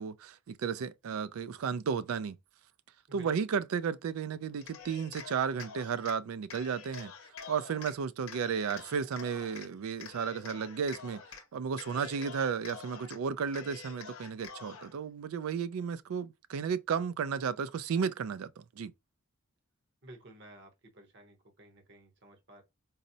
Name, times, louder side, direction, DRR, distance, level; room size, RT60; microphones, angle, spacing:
voice 1, 0.0-2.4 3.1-7.1 7.5-11.2 11.5-18.9, right 6 dB, 85° right, 0.4 m, -33 dB
voice 2, 3.1-3.5 20.0-22.6, right 1 dB, 55° right, 0.9 m, -54 dB
Cheering, 4.5-6.2 6.5-7.9 8.3-9.7 10.0-11.4 11.7-13.2 13.5-14.9, left 6 dB, 85° left, 0.7 m, -47 dB
4.0 x 2.0 x 2.6 m
head